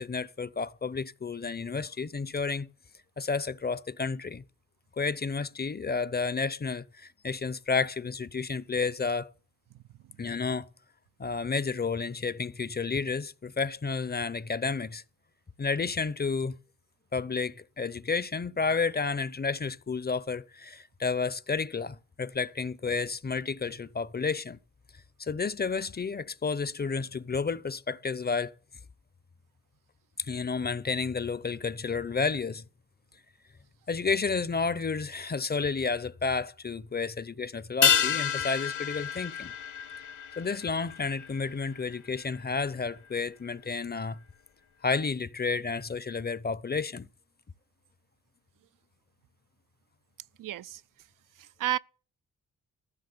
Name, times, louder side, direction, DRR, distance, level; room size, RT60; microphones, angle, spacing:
voice 1, 0.0-2.7 3.2-4.4 5.0-9.3 10.2-10.7 11.2-15.0 15.6-16.6 17.1-24.6 25.2-28.5 30.2-32.6 33.9-39.5 40.4-44.2 44.8-47.1, left 4 dB, 30° left, 0.8 m, -31 dB
sound 1, 37.8-42.5 42.8-42.9, left 8 dB, 60° left, 1.4 m, -29 dB
voice 2, 50.4-50.8 51.4-51.8, right 12 dB, 65° right, 0.5 m, -31 dB
15.0 x 6.3 x 6.9 m
supercardioid pair, 50°, 35 cm